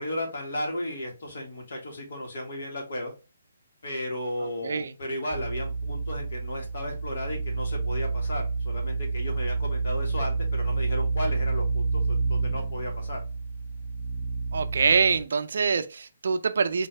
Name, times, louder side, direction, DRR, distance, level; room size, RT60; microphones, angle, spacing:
voice 1, 0.0-3.1 3.8-13.2, left 1 dB, 65° left, 1.7 m, -34 dB
voice 2, 4.4-4.9 14.5-16.9, right 5 dB, 65° right, 0.5 m, -25 dB
sound 1, 5.3-15.2, right 4 dB, 15° right, 0.6 m, -29 dB
4.1 x 2.7 x 3.2 m
hypercardioid pair, 150°, 0 cm